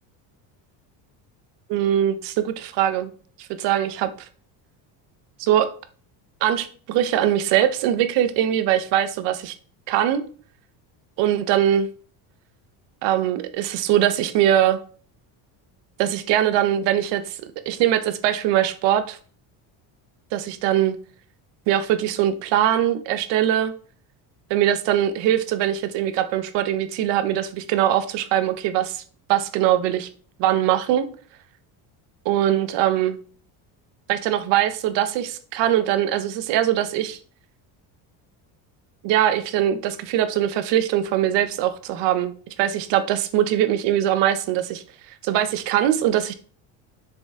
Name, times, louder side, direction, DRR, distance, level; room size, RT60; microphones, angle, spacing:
voice 1, 1.7-3.1 3.4-4.1 5.4-5.7 6.4-9.5 9.9-10.2 11.2-11.9 13.0-14.8 16.0-19.2 20.3-20.9 21.7-23.7 24.5-29.0 29.3-30.1 30.4-31.1 32.2-33.2 34.1-37.2 39.0-42.3 42.6-46.3, right 11 dB, 65° right, 10 dB, 0.9 m, -22 dB
6.7 x 4.5 x 3.6 m, 0.43 s
cardioid pair, 150°, 46 cm